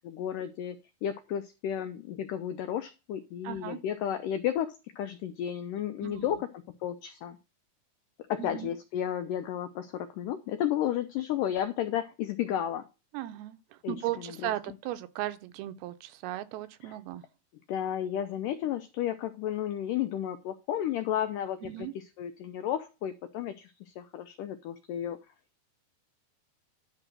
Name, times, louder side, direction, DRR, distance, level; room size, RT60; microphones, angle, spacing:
voice 1, 0.0-7.4 8.3-12.8 13.8-14.5 16.8-16.9 17.7-25.2, left 10 dB, 90° left, 1.8 m, -33 dB
voice 2, 3.4-3.8 6.0-6.4 8.4-8.7 13.1-17.2 21.6-21.9, right 14 dB, 80° right, 2.5 m, -37 dB
11.0 x 3.8 x 6.2 m
omnidirectional pair, 4.6 m